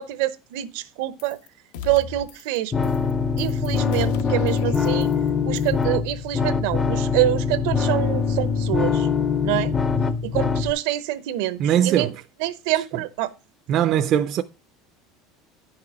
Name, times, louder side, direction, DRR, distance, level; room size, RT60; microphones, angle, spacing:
voice 1, 0.0-1.4 1.8-2.9 3.4-5.1 5.5-9.1 9.4-9.7 10.2-12.1 12.4-13.3, right 15 dB, 70° right, 0.7 m, -26 dB
sound 1, 1.2-1.5 1.7-2.6 2.8-3.1 3.4-5.3 5.6-5.8, left 7 dB, 80° left, 1.0 m, -38 dB
sound 2, 2.7-10.7, left 5 dB, 15° left, 0.5 m, -23 dB
voice 2, 11.6-12.2 12.7-12.8 13.7-14.4, right 10 dB, 35° right, 0.5 m, -20 dB
10.0 x 5.9 x 4.8 m
cardioid pair, 170°, 0 cm